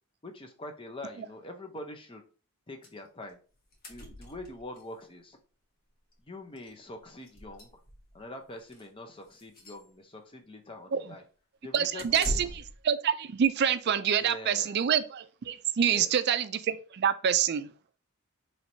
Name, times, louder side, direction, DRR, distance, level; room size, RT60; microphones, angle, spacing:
voice 1, 0.2-2.2 2.7-3.4 3.9-5.4 6.3-7.8 8.1-11.2 11.6-12.4 14.2-14.8 15.9-16.1, left 1 dB, 25° left, 4 dB, 0.6 m, -44 dB
sound 1, 2.8-3.0 3.3-3.4 3.6-4.8 6.1-6.2 6.6-6.7 7.2-8.1 8.6-8.9 9.3-9.8 12.0-12.8, equal, 40° left, 1.1 m, -40 dB
voice 2, 11.7-17.7, right 8 dB, 50° right, 12 dB, 0.3 m, -27 dB
4.4 x 3.2 x 2.7 m, 0.37 s
head